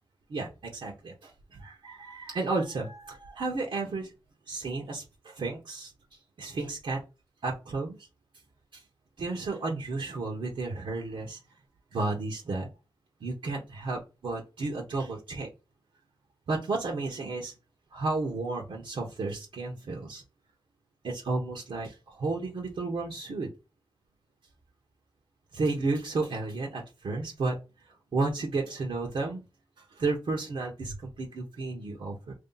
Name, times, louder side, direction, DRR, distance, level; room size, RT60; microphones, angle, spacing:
voice 1, 0.3-4.1 4.5-5.9 6.4-7.0 7.4-8.0 8.7-8.8 9.2-11.4 11.9-12.7 13.2-15.5 16.5-17.5 17.9-20.2 21.0-23.5 25.5-27.6 28.1-29.4 29.8-32.3, right 3 dB, 75° right, -2 dB, 1.0 m, -32 dB
3.1 x 2.8 x 3.9 m, 0.28 s
wide cardioid pair, 115°, 9 cm